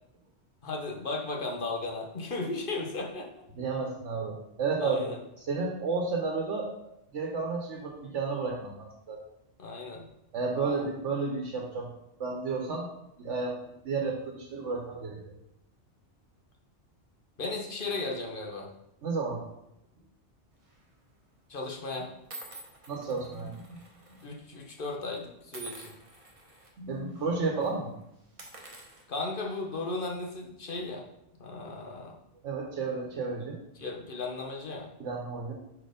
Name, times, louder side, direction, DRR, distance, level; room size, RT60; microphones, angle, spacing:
voice 1, 0.6-3.3 4.8-5.2 9.6-10.0 10.5-10.9 17.4-18.7 21.5-22.1 24.2-25.9 29.1-31.0 31.4-32.1 33.7-34.9, left 3 dB, 50° left, 0 dB, 1.1 m, -35 dB
voice 2, 3.6-5.1 5.5-6.7 7.1-9.2 10.3-11.9 12.2-12.9 13.2-15.3 19.0-19.4 22.9-23.8 24.1-24.2 26.8-27.9 32.4-33.6 35.0-35.5, right 4 dB, 85° right, 0 dB, 1.2 m, -32 dB
sound 1, 20.6-20.9 21.7-21.8 22.3-24.3 24.5-24.7 25.5-26.7 27.1-27.3 27.6-27.7 28.2-29.8, right 3 dB, 30° right, 1.0 m, -48 dB
4.6 x 4.3 x 5.0 m, 0.82 s
omnidirectional pair, 1.2 m